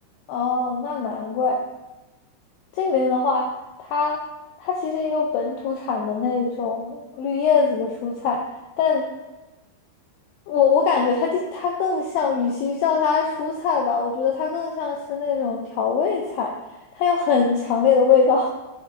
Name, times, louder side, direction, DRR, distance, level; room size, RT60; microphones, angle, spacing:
voice 1, 0.3-1.6 2.7-3.5 3.8-4.3 4.6-8.4 8.8-9.1 10.5-16.6 17.0-18.5, left 5 dB, 90° left, 1 dB, 2.3 m, -22 dB
9.4 x 7.0 x 2.6 m, 1.1 s
omnidirectional pair, 5.4 m